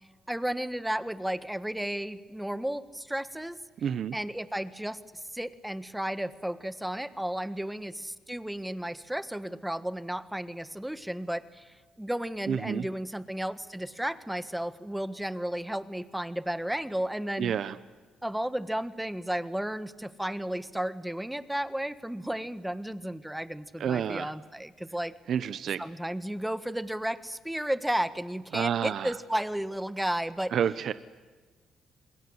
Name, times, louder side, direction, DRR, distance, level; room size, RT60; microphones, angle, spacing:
voice 1, 0.3-3.6 4.1-17.5 18.2-25.1 25.8-30.5, right 1 dB, 5° right, 13 dB, 1.5 m, -33 dB
voice 2, 3.8-4.2 12.5-12.9 17.4-17.8 23.8-24.3 25.3-25.8 28.5-29.1 30.5-30.9, right 8 dB, 60° right, 14 dB, 0.9 m, -29 dB
27.5 x 21.0 x 9.7 m, 1.4 s
cardioid pair, 90°, 0 cm